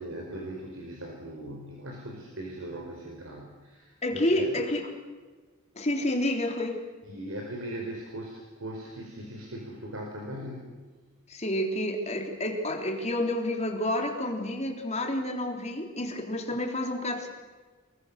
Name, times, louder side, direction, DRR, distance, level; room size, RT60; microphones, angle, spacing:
voice 1, 0.0-4.6 7.0-10.9, right 1 dB, 70° right, 1 dB, 4.6 m, -39 dB
voice 2, 4.0-4.8 5.7-6.8 11.3-17.3, left 1 dB, 30° left, 2 dB, 3.6 m, -29 dB
29.0 x 22.5 x 6.7 m, 1.3 s
head